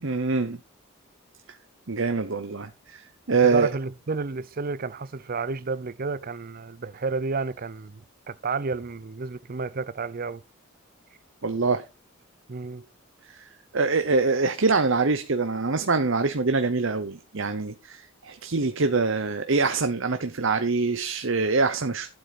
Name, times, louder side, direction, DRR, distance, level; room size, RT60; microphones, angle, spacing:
voice 1, 0.0-0.6 1.9-3.0 3.3-3.7 11.4-11.8 13.3-13.5 13.7-22.1, right 4 dB, 65° right, 0.9 m, -24 dB
voice 2, 3.4-10.4 12.5-12.8, right 4 dB, 45° right, 0.6 m, -31 dB
12.0 x 7.9 x 4.2 m
head